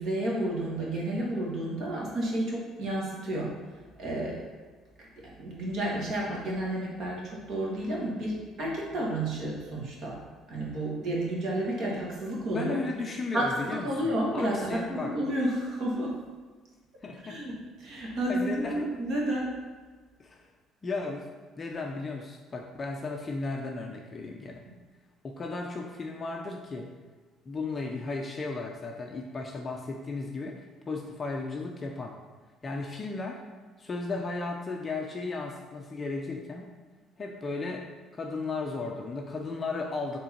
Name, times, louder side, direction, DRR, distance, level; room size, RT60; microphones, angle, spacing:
voice 1, 0.0-3.5 4.0-4.5 5.4-10.2 10.5-12.8 13.3-16.2 17.3-19.5, right 1 dB, 45° right, -3 dB, 1.7 m, -31 dB
voice 2, 12.5-15.1 17.0-17.6 17.9-18.9 20.2-20.5 20.8-21.3 21.6-24.6 25.2-26.9 27.5-32.2 32.6-33.4 33.8-36.7 37.2-37.9 38.1-40.2, left 3 dB, 20° left, 1 dB, 0.5 m, -35 dB
6.6 x 3.7 x 4.5 m, 1.4 s
cardioid pair, 170°, 0 cm